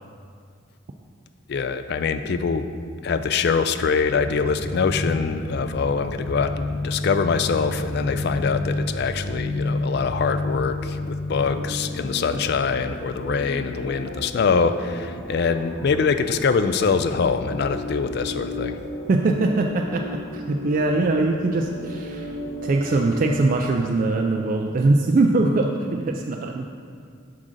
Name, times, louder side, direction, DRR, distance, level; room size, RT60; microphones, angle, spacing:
voice 1, 1.5-2.6 3.0-18.8, left 5 dB, 50° left, 10 dB, 0.3 m, -24 dB
sound 1, 4.0-23.5, left 2 dB, 85° left, 1.1 m, -32 dB
voice 2, 19.1-22.4 22.6-26.7, right 2 dB, 40° right, 2 dB, 0.3 m, -22 dB
7.5 x 3.8 x 6.3 m, 2.2 s
head